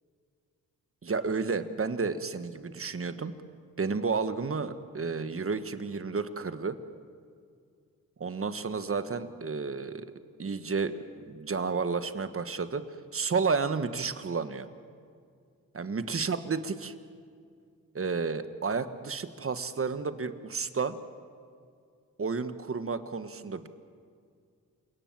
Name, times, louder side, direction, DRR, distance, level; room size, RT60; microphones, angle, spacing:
voice 1, 1.0-3.3 3.8-6.8 8.2-10.1 10.4-12.8 13.1-14.7 15.7-16.9 17.9-21.0 22.2-23.7, right 4 dB, 40° right, 11 dB, 1.4 m, -31 dB
29.0 x 18.0 x 7.5 m, 2.2 s
cardioid pair, 75°, 35 cm